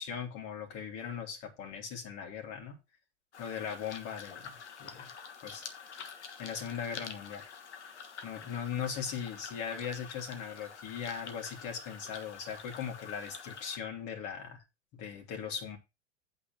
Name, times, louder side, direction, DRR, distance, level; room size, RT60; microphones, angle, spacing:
voice 1, 0.0-2.7 3.4-5.1 5.4-5.6 6.4-7.5 8.2-14.6 14.9-15.8, left 7 dB, 45° left, 2.9 m, -39 dB
sound 1, 3.3-13.8, left 6 dB, 75° left, 1.5 m, -47 dB
8.6 x 4.4 x 6.2 m
figure-of-eight pair, 95°, 34 cm